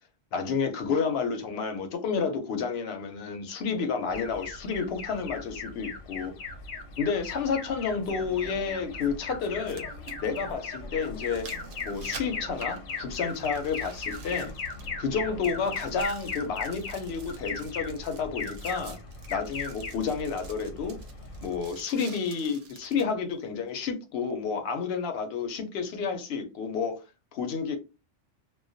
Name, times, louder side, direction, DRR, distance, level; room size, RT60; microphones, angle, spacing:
voice 1, 0.3-6.3 7.0-9.9 10.2-11.5 11.8-14.5 15.0-19.0 19.3-21.0 21.4-27.0 27.3-27.8, left 5 dB, 65° left, 0.8 m, -30 dB
Alarm, 4.1-21.7, left 4 dB, 85° left, 1.1 m, -38 dB
sound 1, 6.2-6.3 8.2-8.3 9.4-15.1 15.4-23.1 23.7-23.8, right 5 dB, 60° right, 0.7 m, -49 dB
sound 2, 8.1-9.3 9.6-16.1, right 2 dB, 90° right, 1.0 m, -45 dB
2.2 x 2.1 x 2.5 m
omnidirectional pair, 1.3 m